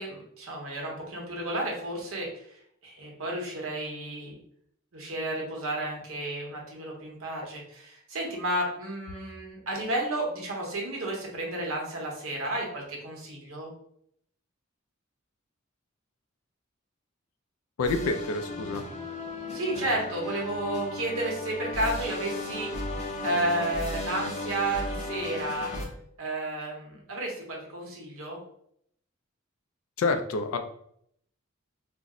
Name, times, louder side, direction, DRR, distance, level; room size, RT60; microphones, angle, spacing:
voice 1, 0.0-2.5 2.8-4.4 4.9-13.7 19.5-22.9 23.2-25.7 26.2-28.4, right 1 dB, 80° right, -1 dB, 1.0 m, -32 dB
voice 2, 17.8-18.8 30.0-30.6, left 3 dB, 85° left, 7 dB, 0.4 m, -27 dB
sound 1, 17.8-25.9, left 2 dB, 35° left, 0.6 m, -35 dB
2.6 x 2.0 x 3.6 m, 0.68 s
head